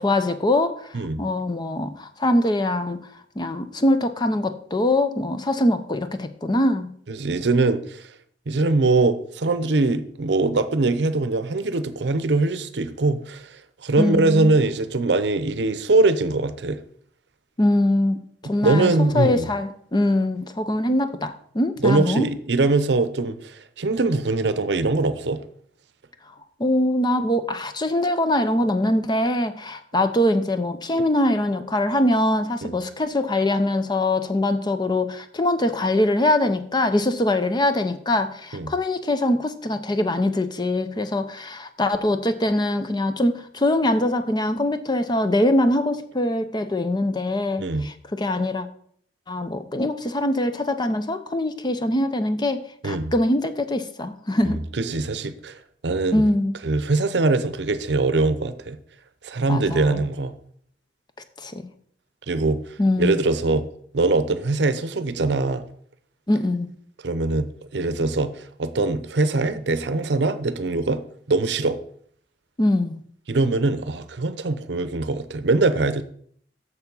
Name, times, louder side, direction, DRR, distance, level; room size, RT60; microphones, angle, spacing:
voice 1, 0.0-3.0 3.4-6.9 14.0-14.5 17.6-18.2 18.4-22.3 26.6-48.7 49.3-54.6 56.1-56.6 59.5-60.0 61.4-61.6 62.8-63.2 66.3-66.7 72.6-73.0, left 1 dB, 25° left, 0.6 m, -23 dB
voice 2, 7.1-8.0 8.5-13.5 13.8-16.8 18.6-19.5 21.8-25.4 30.9-31.0 32.6-32.8 38.5-38.7 47.6-47.9 52.8-53.1 54.4-55.6 55.8-56.2 56.6-58.8 59.2-60.3 62.3-62.6 63.0-63.7 63.9-65.6 67.0-68.3 68.6-71.0 71.3-71.8 73.3-76.0, right 3 dB, 65° right, 0.7 m, -22 dB
7.0 x 6.8 x 5.4 m
head